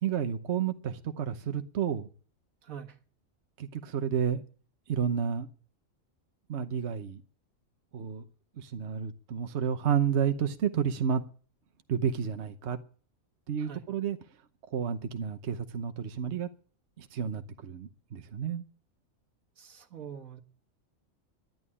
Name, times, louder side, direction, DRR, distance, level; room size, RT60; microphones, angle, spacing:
voice 1, 0.0-2.1 3.6-4.4 4.9-5.5 6.5-7.2 7.9-8.2 8.6-11.2 11.9-12.8 13.5-14.2 14.7-16.5 17.0-18.6, right 8 dB, 55° right, 1.2 m, -31 dB
voice 2, 2.6-3.0 13.6-13.8 19.6-20.4, right 8 dB, 85° right, 2.0 m, -44 dB
11.0 x 11.0 x 9.8 m
omnidirectional pair, 1.4 m